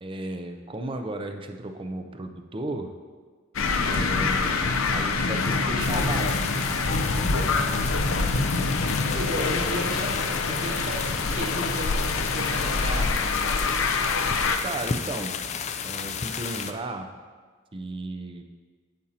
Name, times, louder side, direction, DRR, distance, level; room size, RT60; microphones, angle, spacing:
voice 1, 0.0-2.9 3.8-6.5 7.2-7.5 14.6-17.1 17.7-18.4, right 2 dB, 25° right, 6 dB, 0.5 m, -34 dB
sound 1, 3.6-14.6, left 3 dB, 85° left, 0.6 m, -25 dB
sound 2, 5.8-16.7, left 6 dB, 35° left, 0.4 m, -34 dB
voice 2, 9.1-13.3, equal, 70° right, -8 dB, 2.7 m, -34 dB
8.7 x 8.7 x 2.8 m, 1.5 s
head